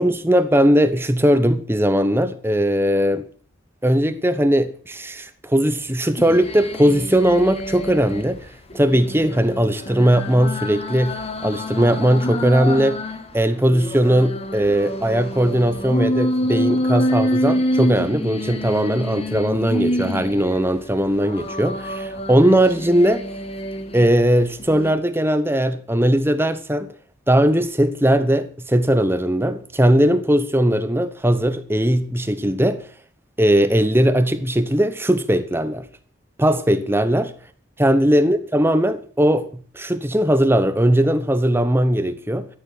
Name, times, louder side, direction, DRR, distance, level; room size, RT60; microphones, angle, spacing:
voice 1, 0.0-3.2 3.8-13.0 13.3-23.2 23.9-26.9 27.3-32.9 33.4-35.9 36.4-37.3 37.8-39.5 39.7-42.5, equal, 10° right, 0.9 m, -19 dB
sound 1, 6.2-8.2 8.7-13.2 13.7-20.6 21.2-24.1 24.6-24.9, equal, 30° left, 1.5 m, -26 dB
13.5 x 10.0 x 7.8 m
head